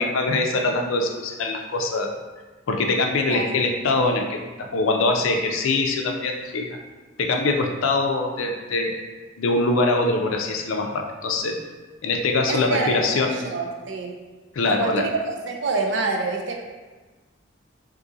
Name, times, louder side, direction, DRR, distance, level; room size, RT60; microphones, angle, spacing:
voice 1, 0.0-2.2 2.7-6.8 7.2-9.0 9.4-11.6 12.0-13.5 14.5-15.0, left 3 dB, 85° left, 3 dB, 0.4 m, -23 dB
voice 2, 12.5-14.1 14.7-15.2 15.4-16.5, right 3 dB, 60° right, 1 dB, 0.4 m, -26 dB
2.7 x 2.6 x 3.7 m, 1.3 s
head